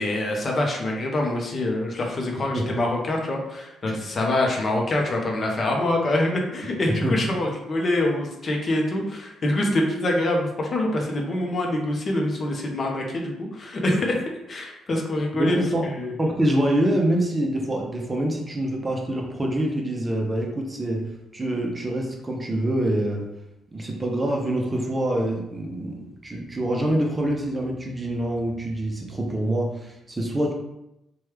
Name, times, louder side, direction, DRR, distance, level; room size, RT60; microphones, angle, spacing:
voice 1, 0.0-16.1, left 1 dB, 45° left, 0 dB, 0.6 m, -25 dB
voice 2, 15.3-15.9 16.2-23.3 23.7-30.5, right 1 dB, 20° right, 0 dB, 0.6 m, -25 dB
3.1 x 2.2 x 3.2 m, 0.88 s
cardioid pair, 90°, 0 cm